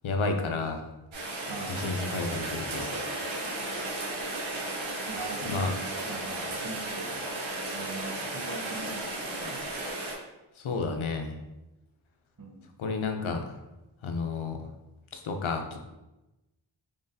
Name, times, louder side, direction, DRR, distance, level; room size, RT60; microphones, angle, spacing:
voice 1, 0.0-0.9 1.7-2.9 5.5-5.7 10.6-11.4 12.8-13.6 14.0-14.7 15.1-15.8, left 3 dB, 90° left, 4 dB, 0.6 m, -31 dB
Rain, 1.1-10.1, right 2 dB, 85° right, 0.9 m, -34 dB
voice 2, 1.5-1.8 5.1-5.7 6.0-7.2 7.7-9.6 12.4-12.7, right 2 dB, 45° right, 0 dB, 0.8 m, -40 dB
3.8 x 3.3 x 2.6 m, 0.99 s
wide cardioid pair, 65°, 47 cm